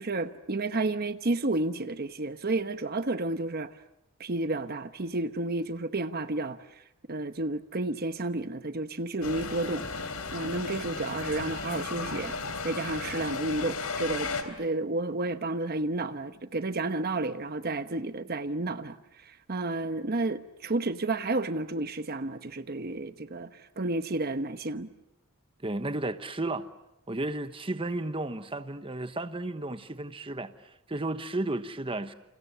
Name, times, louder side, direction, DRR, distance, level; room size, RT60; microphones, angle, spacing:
voice 1, 0.0-3.7 4.2-6.8 7.1-12.4 12.6-24.9, right 2 dB, 45° right, 1.0 m, -31 dB
sound 1, 9.2-14.4, left 4 dB, 80° left, 3.4 m, -35 dB
voice 2, 25.6-26.7 27.1-32.1, right 2 dB, 25° right, 1.1 m, -33 dB
29.5 x 29.0 x 6.9 m
head